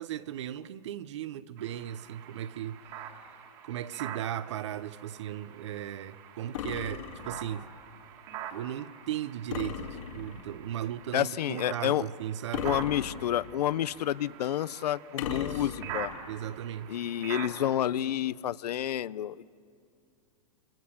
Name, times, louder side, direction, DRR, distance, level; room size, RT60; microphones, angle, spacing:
voice 1, 0.0-2.9 3.6-7.7 8.5-12.8 15.3-16.0 16.3-17.0, right 11 dB, 45° right, 0.7 m, -37 dB
sound 1, 1.6-17.8, right 9 dB, 25° right, 1.7 m, -45 dB
sound 2, 6.5-7.6 9.5-10.6 12.5-13.7 15.2-16.2, left 9 dB, 55° left, 2.6 m, -38 dB
voice 2, 11.1-12.0 12.6-16.1 16.9-19.6, left 11 dB, 85° left, 0.6 m, -29 dB
28.5 x 26.0 x 7.2 m
supercardioid pair, 175°, 20 cm